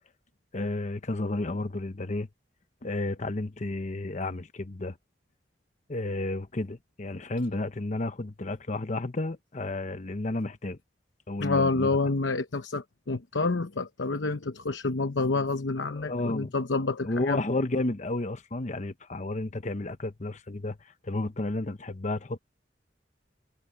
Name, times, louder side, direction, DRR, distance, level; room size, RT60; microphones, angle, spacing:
voice 1, 0.5-2.3 2.8-5.0 5.9-10.8 11.3-11.9 16.0-16.5 17.0-22.4, left 2 dB, 40° left, 0.9 m, -32 dB
voice 2, 11.4-17.4, left 3 dB, 90° left, 0.9 m, -28 dB
head